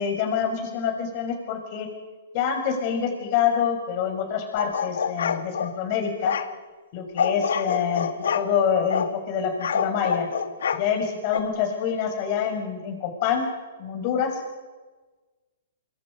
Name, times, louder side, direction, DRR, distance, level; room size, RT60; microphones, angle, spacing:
voice 1, 0.0-1.9 2.3-6.3 6.9-8.1 8.3-10.3 10.7-13.5 13.8-14.3, left 7 dB, 40° left, 4 dB, 6.3 m, -26 dB
sound 1, 4.6-5.7 6.2-6.5 7.2-8.5 8.9-9.1 9.6-10.8 11.3-11.4, left 7 dB, 75° left, 1.6 m, -26 dB
24.5 x 24.5 x 5.5 m, 1.3 s
hypercardioid pair, 145°, 0 cm